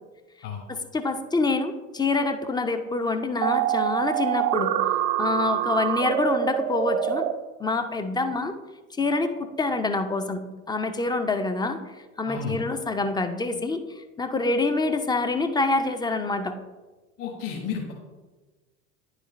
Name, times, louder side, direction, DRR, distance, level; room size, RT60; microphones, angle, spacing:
voice 1, 0.7-4.8 5.2-7.3 7.6-8.5 9.0-16.6, left 3 dB, 10° left, 8 dB, 0.5 m, -26 dB
sound 1, 3.4-7.3, right 12 dB, 40° right, 0.5 m, -25 dB
voice 2, 17.2-17.9, left 6 dB, 45° left, -1 dB, 1.3 m, -32 dB
9.9 x 5.0 x 3.1 m, 1.2 s
figure-of-eight pair, 70°, 42 cm